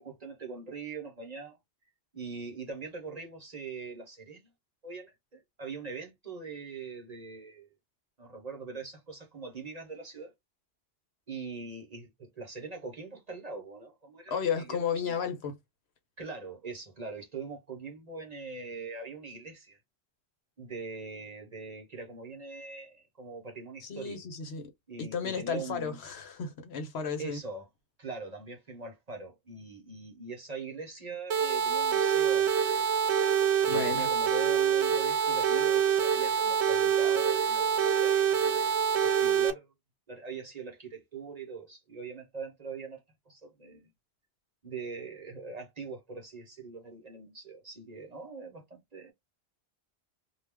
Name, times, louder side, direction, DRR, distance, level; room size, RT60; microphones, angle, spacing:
voice 1, 0.0-1.6 2.1-4.5 4.8-7.7 8.2-10.3 11.3-15.2 16.2-19.8 20.6-24.2 24.9-26.0 27.2-27.7 28.0-32.8 33.7-39.7 40.1-43.9 44.6-49.1, right 4 dB, 40° right, 0.9 m, -42 dB
voice 2, 14.3-15.6 23.8-24.7 25.0-27.4 33.7-34.1, left 6 dB, 70° left, 1.0 m, -33 dB
sound 1, 31.3-39.5, right 8 dB, 80° right, 0.9 m, -26 dB
2.4 x 2.2 x 3.4 m
omnidirectional pair, 1.1 m